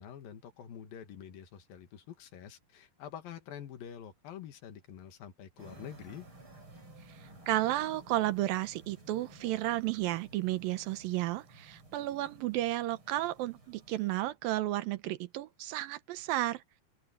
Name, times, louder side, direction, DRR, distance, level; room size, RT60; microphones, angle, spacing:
voice 1, 0.0-6.3, left 9 dB, 85° left, 3.5 m, -47 dB
sound 1, 5.6-14.3, right 1 dB, 35° right, 7.3 m, -55 dB
voice 2, 7.5-16.6, right 15 dB, 85° right, 2.7 m, -32 dB
open air
omnidirectional pair, 4.0 m